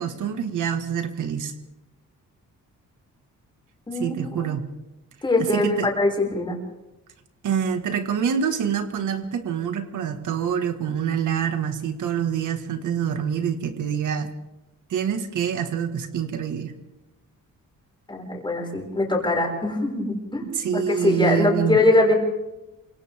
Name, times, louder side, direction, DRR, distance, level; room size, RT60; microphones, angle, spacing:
voice 1, 0.0-1.5 4.0-4.7 5.5-5.9 7.4-14.3 14.9-16.7 20.5-21.8, right 8 dB, 70° right, 7 dB, 1.8 m, -26 dB
voice 2, 3.9-4.5 5.2-6.6 18.1-22.1, left 2 dB, 15° left, 0 dB, 5.9 m, -22 dB
28.0 x 25.5 x 3.6 m, 0.97 s
wide cardioid pair, 160°, 32 cm